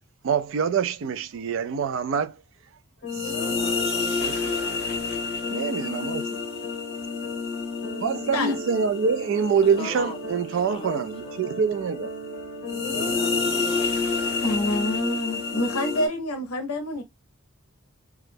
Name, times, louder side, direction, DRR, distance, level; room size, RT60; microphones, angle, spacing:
voice 1, 0.2-2.3 3.2-3.3 3.7-3.8 4.2-4.4 4.7-4.8 5.5-6.2 8.0-12.1 12.9-13.7, right 6 dB, 60° right, 0.3 m, -26 dB
sound 1, 3.0-16.1, left 4 dB, 45° left, 0.8 m, -29 dB
voice 2, 9.8-10.2 10.5-11.4 13.5-14.3, left 4 dB, 25° left, 0.4 m, -39 dB
voice 3, 14.4-17.0, left 1 dB, 90° left, 0.5 m, -27 dB
2.3 x 2.0 x 3.2 m
head